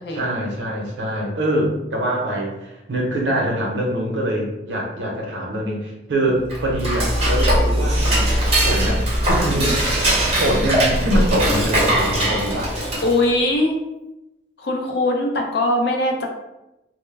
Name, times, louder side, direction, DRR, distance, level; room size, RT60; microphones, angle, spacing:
voice 1, 0.1-8.3 8.6-9.0 9.2-9.8 10.4-12.7, right 1 dB, 90° right, -1 dB, 0.6 m, -24 dB
Dishes pots and pans / Cutlery silverware, 6.4-13.3, right 1 dB, 35° right, 0.7 m, -20 dB
voice 2, 13.0-13.7 14.6-16.3, left 1 dB, 65° left, 1 dB, 0.5 m, -21 dB
2.1 x 2.0 x 3.2 m, 0.95 s
head